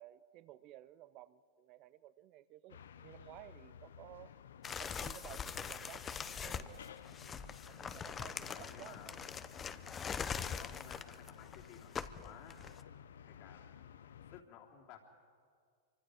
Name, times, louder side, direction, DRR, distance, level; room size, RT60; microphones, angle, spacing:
voice 1, 0.0-4.4 4.8-6.8 7.6-9.3, right 15 dB, 45° right, 16 dB, 0.8 m, -55 dB
sound 1, 2.7-14.4, left 9 dB, 80° left, 0.7 m, -55 dB
sound 2, 4.6-12.8, left 7 dB, 20° left, 0.8 m, -43 dB
voice 2, 8.4-9.1 10.5-12.6 13.2-15.0, left 8 dB, 50° left, 0 dB, 3.3 m, -56 dB
26.0 x 25.0 x 5.1 m, 2.1 s
hypercardioid pair, 120°, 0 cm